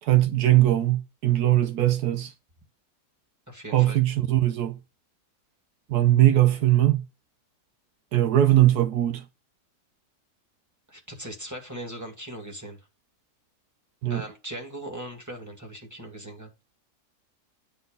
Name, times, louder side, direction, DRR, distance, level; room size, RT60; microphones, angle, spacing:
voice 1, 0.0-2.3 3.7-4.8 5.9-7.0 8.1-9.2 14.0-14.2, right 14 dB, 80° right, 1.2 m, -20 dB
voice 2, 3.5-4.0 10.9-12.8 14.1-16.5, right 1 dB, 10° right, 2.0 m, -39 dB
9.7 x 4.1 x 5.3 m
omnidirectional pair, 1.7 m